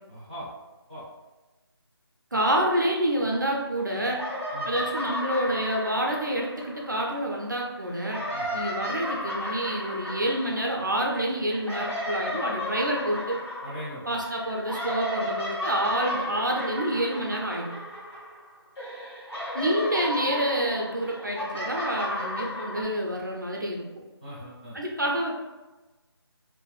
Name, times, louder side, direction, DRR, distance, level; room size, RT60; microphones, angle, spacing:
voice 1, 0.1-0.5 0.9-1.0 4.5-4.8 8.3-8.6 13.6-14.2 24.2-24.8, equal, 20° left, -11 dB, 0.5 m, -40 dB
voice 2, 2.3-4.2 4.7-8.2 8.5-13.4 14.1-17.7 19.5-23.9 24.7-25.4, right 1 dB, 45° right, -1 dB, 0.3 m, -28 dB
sound 1, 3.2-3.8 4.1-7.4 7.9-18.5 18.8-22.8, left 1 dB, 80° left, 1.1 m, -34 dB
2.5 x 2.4 x 2.3 m, 1.1 s
figure-of-eight pair, 180°, 14 cm